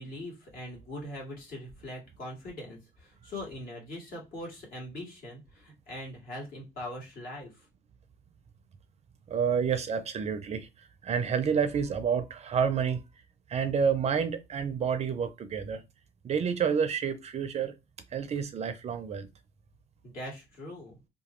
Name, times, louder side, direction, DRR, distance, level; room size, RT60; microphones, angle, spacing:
voice 1, 0.0-7.7 20.0-21.0, left 1 dB, 60° left, 1.8 m, -41 dB
voice 2, 9.3-10.7 11.0-13.0 13.5-15.8 16.2-17.7 18.1-19.3, right 7 dB, 40° right, 0.5 m, -29 dB
2.9 x 2.2 x 3.0 m
cardioid pair, 110°, 17 cm